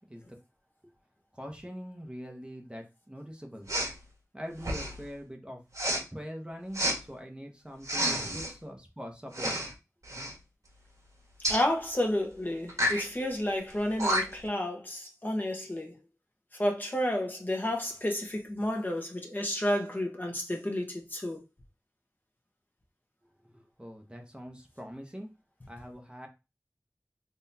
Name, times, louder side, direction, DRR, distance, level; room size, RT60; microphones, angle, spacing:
voice 1, 1.3-3.7 4.3-5.6 6.1-9.6 23.4-25.3 25.7-26.3, equal, 15° right, 0.9 m, -43 dB
Respiratory sounds, 3.7-3.9 4.6-5.0 5.7-6.0 6.7-7.0 7.8-8.5 9.3-9.7 10.0-10.3 11.4-11.6 12.7-13.0 13.7-13.8 14.0-14.5, equal, 60° right, 1.6 m, -30 dB
voice 2, 11.5-16.0 16.6-21.4, left 1 dB, 30° left, 1.1 m, -31 dB
3.8 x 3.0 x 2.8 m
wide cardioid pair, 45°, 6 cm